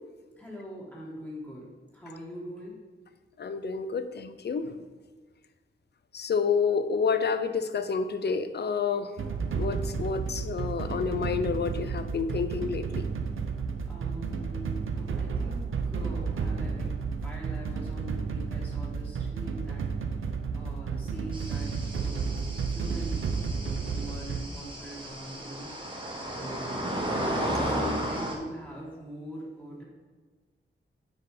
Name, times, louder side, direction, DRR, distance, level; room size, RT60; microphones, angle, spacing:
voice 1, 0.4-2.8 13.8-16.9 17.2-19.9 20.5-23.2 23.5-27.2 27.6-29.8, equal, 10° left, -5 dB, 1.8 m, -42 dB
voice 2, 3.4-4.7 6.1-9.1 9.5-13.1, left 5 dB, 55° left, 10 dB, 0.5 m, -29 dB
sound 1, 9.2-24.4, right 5 dB, 85° right, 0.8 m, -32 dB
sound 2, 21.3-28.3, right 1 dB, 25° right, 1.4 m, -34 dB
9.4 x 4.8 x 4.9 m, 1.4 s
wide cardioid pair, 170°, 20 cm